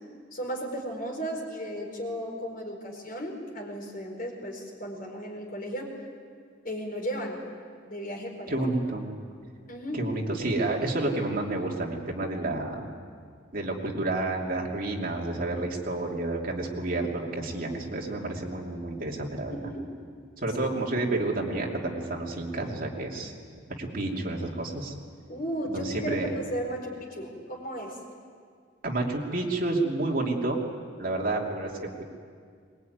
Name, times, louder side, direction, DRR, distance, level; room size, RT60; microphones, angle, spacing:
voice 1, 0.3-5.9 6.6-7.4 7.8-8.7 9.7-10.1 19.5-20.1 25.3-28.0, equal, 45° left, 1 dB, 4.8 m, -35 dB
voice 2, 8.5-9.1 9.9-12.9 13.5-19.6 20.4-23.3 23.8-24.9 25.7-26.3 28.8-30.6 31.0-32.0, right 2 dB, 50° right, -1 dB, 2.9 m, -30 dB
22.5 x 21.5 x 9.4 m, 2.1 s
head